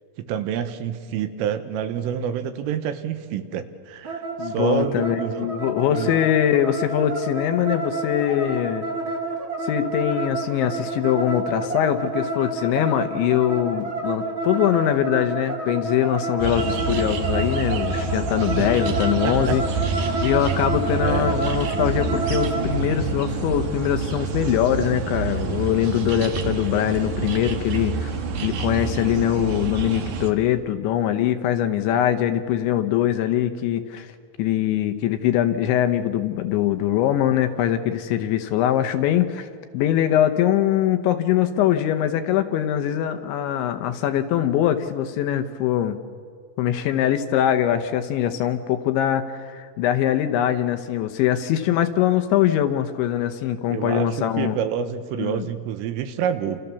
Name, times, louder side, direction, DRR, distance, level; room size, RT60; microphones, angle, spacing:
voice 1, 0.2-5.5 5.9-6.2 18.6-18.7 19.2-19.6 21.0-21.3 53.7-56.6, right 8 dB, 80° right, 9 dB, 3.7 m, -28 dB
sound 1, 4.0-22.7, right 2 dB, 30° right, 2.8 m, -29 dB
voice 2, 4.4-8.9 9.6-19.6 20.2-28.1 28.4-34.1 34.4-39.5 39.7-46.0 46.6-54.5 55.2-55.5, left 11 dB, 75° left, 8 dB, 3.0 m, -22 dB
sound 2, 16.4-30.3, right 4 dB, 60° right, 2.0 m, -27 dB
29.5 x 28.5 x 7.0 m, 2.1 s
omnidirectional pair, 5.9 m